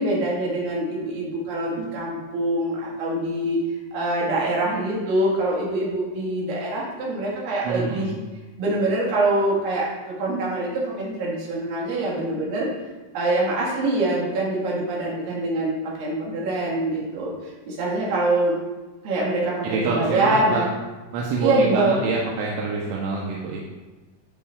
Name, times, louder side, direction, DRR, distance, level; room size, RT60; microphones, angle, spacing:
voice 1, 0.0-3.6 3.9-8.1 8.6-9.9 10.2-12.7 13.1-18.6 19.0-20.7 21.4-22.0, right 2 dB, 60° right, -4 dB, 2.6 m, -24 dB
voice 2, 7.6-8.1 19.6-20.6 21.1-23.6, right 4 dB, 85° right, -3 dB, 3.2 m, -26 dB
11.0 x 5.5 x 2.3 m, 1.2 s
omnidirectional pair, 5.5 m